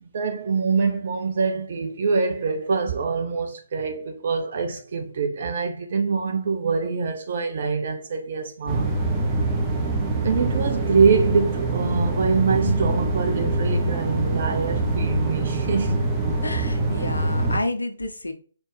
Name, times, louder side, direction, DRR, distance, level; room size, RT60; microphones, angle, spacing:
voice 1, 0.0-8.9 10.2-16.0, right 5 dB, 45° right, 0.5 m, -24 dB
sound 1, 8.7-17.6, right 2 dB, 15° right, 0.8 m, -24 dB
voice 2, 16.4-18.3, left 2 dB, 70° left, 0.8 m, -30 dB
4.0 x 3.3 x 3.3 m
figure-of-eight pair, 135°, 0 cm